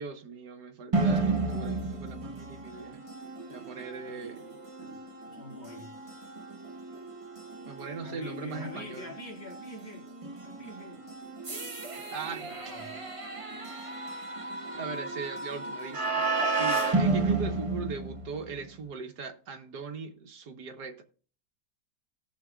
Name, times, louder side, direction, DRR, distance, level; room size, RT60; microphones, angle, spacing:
voice 1, 0.0-3.0 3.5-4.4 7.7-9.1 12.0-12.5 14.8-16.3 16.6-21.0, right 5 dB, 80° right, 1.8 m, -39 dB
sound 1, 0.9-18.6, right 3 dB, 25° right, 1.0 m, -33 dB
voice 2, 5.2-6.0 8.0-10.0 10.4-11.0 12.5-13.0, left 1 dB, 60° left, 4.1 m, -44 dB
18.0 x 6.4 x 2.4 m
omnidirectional pair, 1.7 m